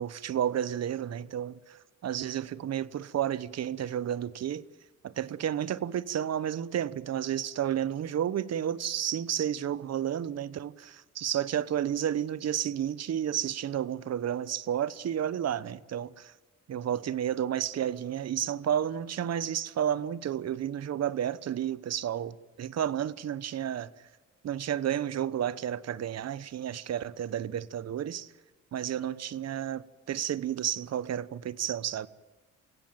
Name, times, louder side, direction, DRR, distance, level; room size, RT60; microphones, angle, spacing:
voice 1, 0.0-4.6 5.0-16.3 16.7-23.9 24.4-28.3 28.7-32.1, right 10 dB, 55° right, 1.1 m, -31 dB
27.5 x 16.5 x 9.1 m
cardioid pair, 90°, 30 cm